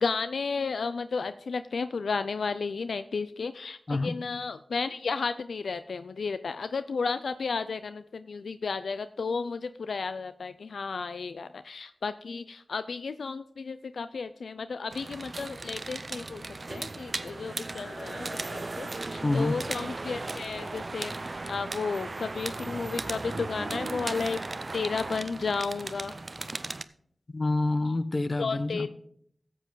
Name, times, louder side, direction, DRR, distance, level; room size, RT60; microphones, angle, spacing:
voice 1, 0.0-16.4 16.7-21.1 21.5-24.4 24.7-26.1 28.4-28.9, left 4 dB, 90° left, 12 dB, 0.3 m, -33 dB
sound 1, 14.9-26.8, right 2 dB, 50° right, 0.5 m, -36 dB
voice 2, 19.2-19.5 27.3-28.9, left 2 dB, 50° left, 12 dB, 0.8 m, -27 dB
13.5 x 7.6 x 3.9 m, 0.66 s
cardioid pair, 45°, 0 cm